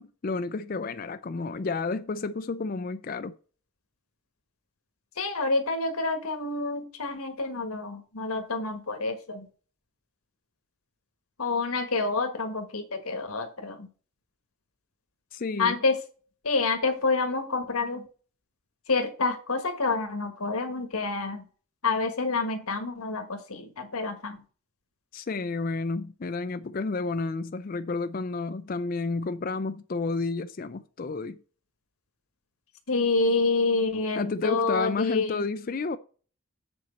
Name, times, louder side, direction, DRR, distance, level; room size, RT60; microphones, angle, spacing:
voice 1, 0.0-3.3 15.3-15.8 25.1-31.4 34.2-36.0, left 3 dB, 40° left, 0.4 m, -31 dB
voice 2, 5.2-9.5 11.4-13.9 15.6-16.0 16.4-18.1 18.9-21.4 21.8-24.4 32.9-35.4, left 3 dB, 80° left, 1.5 m, -28 dB
7.8 x 4.1 x 6.9 m
head